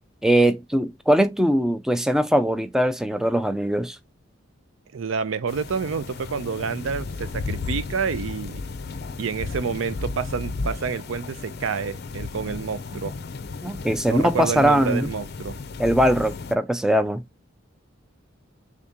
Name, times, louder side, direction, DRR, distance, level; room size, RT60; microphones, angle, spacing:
voice 1, 0.2-4.0 13.6-15.1 15.8-17.2, equal, 5° right, 0.4 m, -21 dB
voice 2, 4.9-8.6 9.2-13.1 14.1-15.6, right 5 dB, 80° right, 0.5 m, -28 dB
sound 1, 5.5-16.5, left 3 dB, 55° left, 0.5 m, -34 dB
3.6 x 2.8 x 3.5 m
head